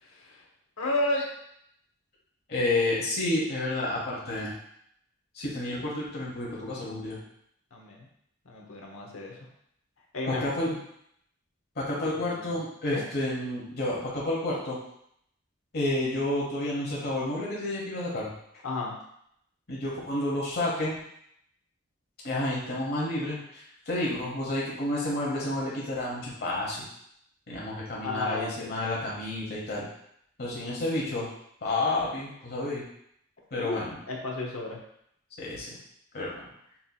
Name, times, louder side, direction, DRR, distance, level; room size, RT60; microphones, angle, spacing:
voice 1, 0.0-0.4 0.8-1.2 7.7-8.1 8.5-9.4 10.1-10.5 12.0-12.6 12.9-13.1 18.6-18.9 28.0-28.7 33.5-33.8 34.1-34.8, left 2 dB, 75° left, 0 dB, 0.8 m, -32 dB
voice 2, 2.5-4.5 5.3-7.2 10.3-10.7 11.8-14.8 15.7-18.3 19.7-21.0 22.2-26.8 27.5-29.9 30.4-31.3 31.6-32.8 33.5-33.9 35.4-35.8 36.1-36.4, left 1 dB, 50° left, -4 dB, 1.1 m, -30 dB
5.6 x 2.8 x 2.3 m, 0.73 s
head